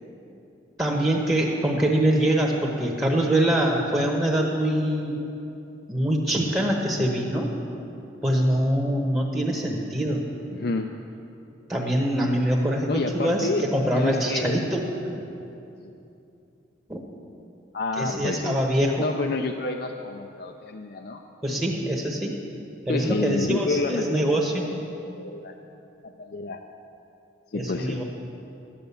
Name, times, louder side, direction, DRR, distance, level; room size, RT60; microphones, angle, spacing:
voice 1, 0.8-5.2 5.9-7.5 8.2-10.2 11.7-15.2 16.9-17.0 18.0-19.0 21.4-22.4 22.8-24.7 27.5-28.0, right 1 dB, 15° right, -2 dB, 1.1 m, -24 dB
voice 2, 10.5-10.9 12.9-13.7 13.9-14.6 15.8-15.9 17.7-18.6 19.0-21.2 22.9-24.6 25.0-25.6 26.0-26.6 27.5-28.0, left 3 dB, 55° left, 4 dB, 0.5 m, -29 dB
13.0 x 10.0 x 7.0 m, 2.8 s
head